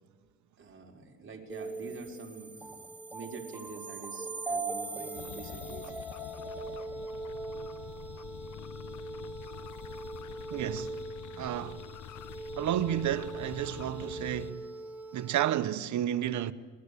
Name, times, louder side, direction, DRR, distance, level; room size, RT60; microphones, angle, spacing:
voice 1, 0.6-5.9 9.0-9.1 9.6-9.7 10.2-10.3, right 4 dB, 40° right, 4.8 m, -46 dB
sound 1, 1.5-15.4, right 3 dB, 5° right, 3.9 m, -41 dB
sound 2, 5.1-14.5, left 10 dB, 75° left, 1.1 m, -46 dB
voice 2, 10.5-11.0 11.4-11.8 12.6-14.7 15.1-16.5, right 11 dB, 70° right, 1.2 m, -31 dB
26.5 x 21.5 x 8.5 m
cardioid pair, 90°, 30 cm